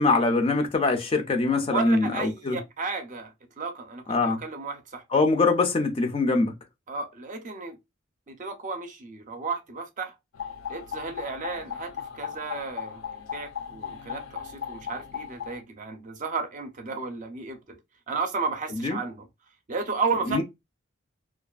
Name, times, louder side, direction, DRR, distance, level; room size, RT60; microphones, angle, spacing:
voice 1, 0.0-2.6 4.1-4.4 5.1-6.5 18.8-19.0 20.3-20.4, left 3 dB, 30° left, 0.3 m, -23 dB
voice 2, 1.5-5.0 6.9-7.8 8.3-10.2 10.7-13.0 13.3-17.8 18.1-19.3 19.7-20.4, right 4 dB, 40° right, 0.5 m, -33 dB
sound 1, 10.3-15.6, left 8 dB, 90° left, 0.5 m, -37 dB
2.4 x 2.3 x 2.3 m
head